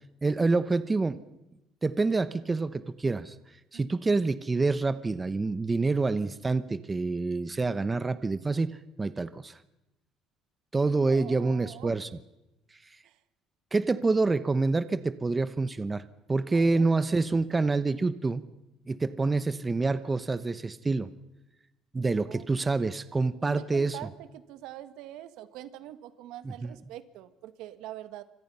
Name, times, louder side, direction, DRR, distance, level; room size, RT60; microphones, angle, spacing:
voice 1, 0.2-1.2 1.8-3.3 3.7-9.6 10.7-12.1 13.7-18.4 18.9-21.1 21.9-24.0 26.6-26.7, right 3 dB, 20° right, 13 dB, 0.9 m, -27 dB
voice 2, 3.7-4.2 10.9-11.9 13.0-13.2 16.5-16.9 22.2-22.5 23.4-28.2, right 13 dB, 80° right, 11 dB, 1.7 m, -44 dB
27.5 x 25.0 x 5.6 m, 0.95 s
cardioid pair, 130°, 0 cm